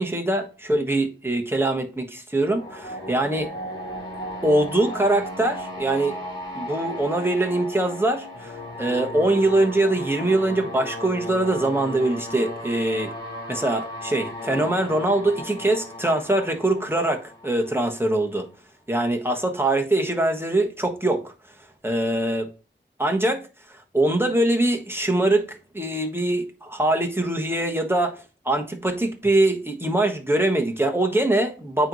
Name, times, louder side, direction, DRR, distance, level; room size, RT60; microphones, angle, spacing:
voice 1, 0.0-3.5 4.4-6.2 6.5-13.1 13.5-18.5 18.9-21.3 21.8-22.5 23.0-23.4 23.7-31.9, right 1 dB, 10° right, 1.3 m, -23 dB
sound 1, 2.4-18.2, left 1 dB, 20° left, 2.2 m, -36 dB
8.7 x 3.1 x 4.1 m
wide cardioid pair, 45°, 20 cm